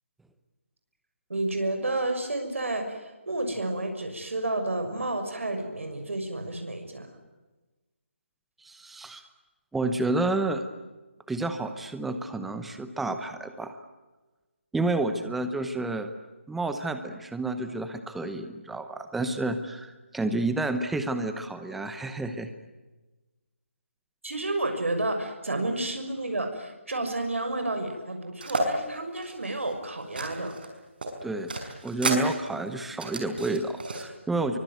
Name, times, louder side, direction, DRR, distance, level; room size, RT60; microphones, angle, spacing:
voice 1, 1.3-7.2 24.2-30.6, right 2 dB, 90° right, 5 dB, 6.3 m, -31 dB
voice 2, 8.6-9.2 9.7-10.6 11.3-13.8 14.7-16.1 16.5-22.5 31.2-31.5 31.8-34.6, right 2 dB, ahead, 9 dB, 0.9 m, -30 dB
ARiggs Paper Coffee Cups, 28.4-28.7 29.2-30.7 31.0-34.0, right 2 dB, 50° right, 5.7 m, -32 dB
25.0 x 24.5 x 9.3 m, 1.2 s
hypercardioid pair, 170°, 7 cm